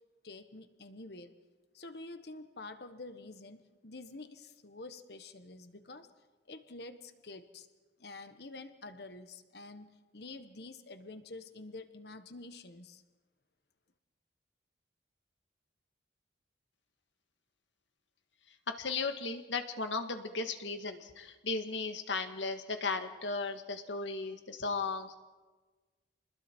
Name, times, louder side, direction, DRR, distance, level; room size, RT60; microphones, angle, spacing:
voice 1, 0.2-1.3 1.7-6.1 6.5-7.7 8.0-13.0, left 2 dB, 60° left, 10 dB, 1.4 m, -48 dB
voice 2, 18.8-25.2, left 4 dB, 85° left, 7 dB, 1.7 m, -36 dB
28.0 x 21.0 x 4.6 m, 1.3 s
head